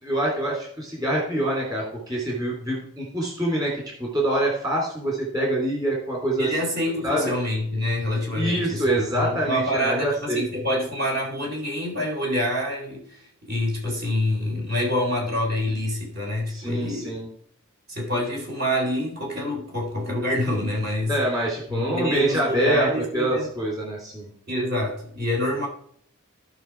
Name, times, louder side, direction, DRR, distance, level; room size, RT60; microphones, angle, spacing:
voice 1, 0.0-6.5 7.0-7.3 8.3-10.4 16.5-17.3 21.1-24.3, right 1 dB, 20° right, -3 dB, 3.1 m, -25 dB
voice 2, 6.4-17.1 17.9-21.2 21.7-23.5 24.5-25.7, left 1 dB, 45° right, -1 dB, 3.7 m, -26 dB
16.0 x 5.7 x 4.6 m, 0.63 s
head